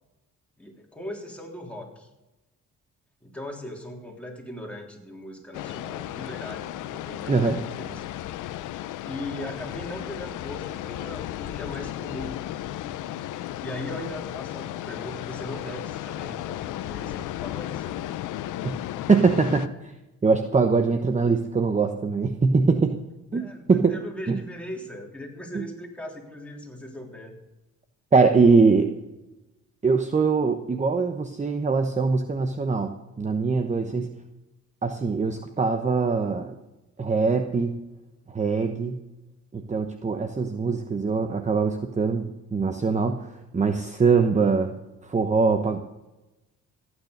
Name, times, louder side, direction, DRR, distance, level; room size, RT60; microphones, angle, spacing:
voice 1, 0.6-2.1 3.2-8.1 9.0-12.5 13.6-18.1 23.3-27.3 33.8-34.1, left 1 dB, 5° left, 0 dB, 3.5 m, -39 dB
sound 1, 5.5-19.7, left 13 dB, 85° left, 0.7 m, -34 dB
voice 2, 7.3-7.6 18.6-18.7 19.1-19.9 20.2-23.0 23.3-24.0 24.3-24.4 25.5-25.6 28.1-28.9 29.8-32.9 33.2-34.1 34.8-36.6 37.0-37.7 38.3-39.0 39.5-44.7 45.0-45.8, right 4 dB, 25° right, 7 dB, 1.0 m, -22 dB
15.0 x 9.4 x 6.6 m, 1.0 s
cardioid pair, 90°, 30 cm